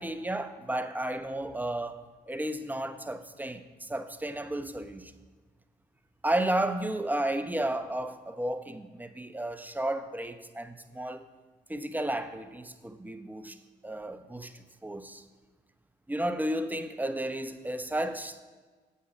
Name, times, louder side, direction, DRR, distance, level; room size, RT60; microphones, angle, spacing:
voice 1, 0.0-5.1 6.2-11.2 11.7-13.6 13.8-15.2 16.1-18.4, right 1 dB, 10° right, 10 dB, 0.8 m, -33 dB
8.3 x 7.9 x 4.4 m, 1.4 s
supercardioid pair, 50°, 19 cm